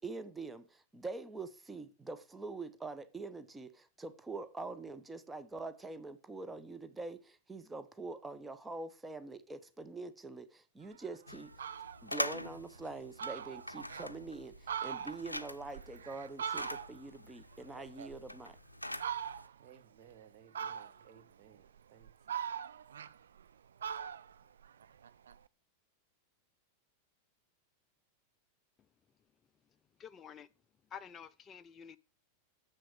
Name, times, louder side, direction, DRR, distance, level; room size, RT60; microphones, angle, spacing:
voice 1, 0.0-11.5 12.0-18.6, right 3 dB, 10° right, 0.8 m, -44 dB
Fowl, 11.0-11.1 11.4-12.0 12.5-12.6 12.9-13.0 13.2-14.1 14.5-17.2 17.5-18.5 19.0-19.7 20.5-21.2 21.8-23.5 23.8-25.4, right 8 dB, 65° right, 0.4 m, -41 dB
sound 1, 11.3-19.5, left 1 dB, 85° left, 0.5 m, -44 dB
voice 2, 19.6-22.4, right 9 dB, 40° right, 1.4 m, -60 dB
voice 3, 30.0-30.5 30.9-32.0, left 8 dB, 25° left, 0.4 m, -49 dB
7.1 x 6.2 x 6.4 m
figure-of-eight pair, 90°, 0 cm